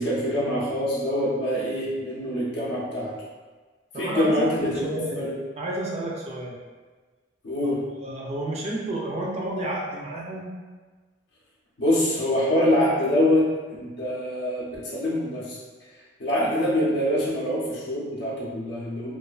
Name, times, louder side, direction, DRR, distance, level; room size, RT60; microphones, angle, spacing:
voice 1, 0.0-3.1 3.9-4.8 5.1-5.3 7.4-7.8 11.8-15.6 16.2-19.2, left 1 dB, 60° left, -6 dB, 0.5 m, -25 dB
voice 2, 3.9-5.3 5.6-6.6 7.6-7.7 8.0-10.5, right 1 dB, 30° right, -3 dB, 0.3 m, -31 dB
2.4 x 2.3 x 2.3 m, 1.4 s
head